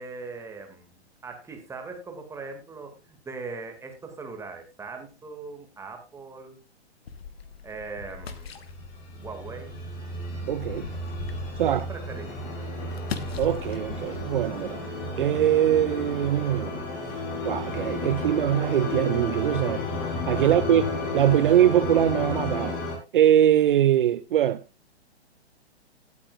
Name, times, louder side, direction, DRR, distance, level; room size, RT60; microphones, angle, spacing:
voice 1, 0.0-6.6 7.6-8.5 9.2-9.8 11.6-12.5 20.4-20.7, right 4 dB, 10° right, 2.3 m, -40 dB
sound 1, 7.1-14.9, left 6 dB, 65° left, 1.4 m, -41 dB
sound 2, 8.6-23.0, left 2 dB, 25° left, 4.1 m, -33 dB
voice 2, 10.5-10.9 11.6-11.8 13.4-14.8 15.2-16.8 17.4-19.9 20.3-20.8 21.1-22.8 23.1-24.6, right 11 dB, 50° right, 0.6 m, -22 dB
18.0 x 8.5 x 2.5 m
figure-of-eight pair, 120°, 33 cm